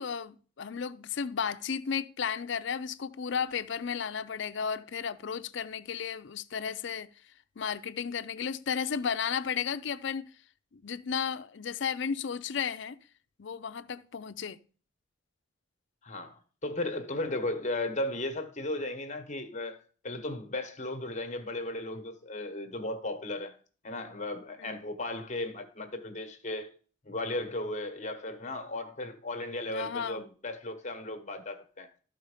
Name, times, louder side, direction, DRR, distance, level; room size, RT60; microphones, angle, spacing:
voice 1, 0.0-7.1 7.6-10.3 10.7-13.0 13.4-14.6 24.6-24.8 29.7-30.2, left 7 dB, 60° left, 0.5 m, -34 dB
voice 2, 16.0-23.6 23.8-26.7 27.0-31.9, left 2 dB, 35° left, 1.1 m, -36 dB
12.5 x 4.5 x 4.9 m
head